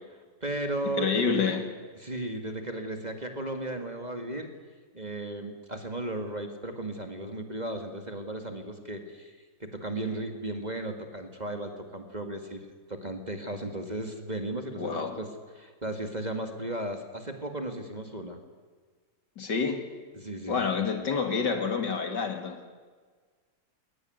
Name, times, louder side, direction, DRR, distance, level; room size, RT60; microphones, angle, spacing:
voice 1, 0.4-1.6 2.0-4.5 4.9-9.3 9.6-15.3 15.6-18.4 20.2-20.6, right 1 dB, 25° right, 5 dB, 2.1 m, -35 dB
voice 2, 1.0-1.7 14.8-15.2 19.4-19.9 20.5-22.6, left 5 dB, 65° left, 6 dB, 2.8 m, -28 dB
20.5 x 19.5 x 9.4 m, 1.5 s
omnidirectional pair, 2.0 m